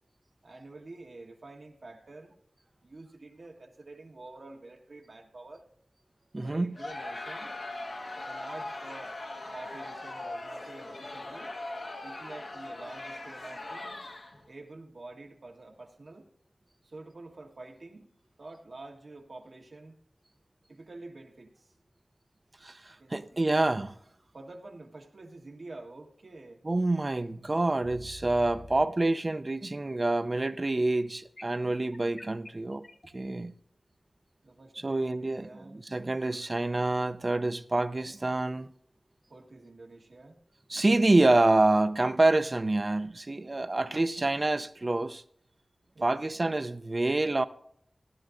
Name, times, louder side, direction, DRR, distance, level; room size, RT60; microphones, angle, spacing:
voice 1, 0.4-2.3 2.8-5.7 6.4-7.6 8.3-9.2 9.5-11.5 12.0-14.0 14.5-16.3 16.8-18.1 18.4-20.0 20.7-21.7 23.0-23.7 24.3-26.6 34.4-35.8 39.3-40.4 45.9-46.2, right 2 dB, 75° right, 1.4 m, -48 dB
voice 2, 6.3-6.7 22.6-23.9 26.6-32.9 33.1-33.5 34.8-38.7 40.7-45.2 46.0-47.5, right 2 dB, 40° right, 0.5 m, -27 dB
Crowd, 6.7-14.5, left 2 dB, 75° left, 1.2 m, -40 dB
sound 1, 27.8-28.9 31.4-33.1, left 2 dB, 55° left, 0.5 m, -46 dB
16.5 x 11.5 x 2.5 m
wide cardioid pair, 65°, 0 cm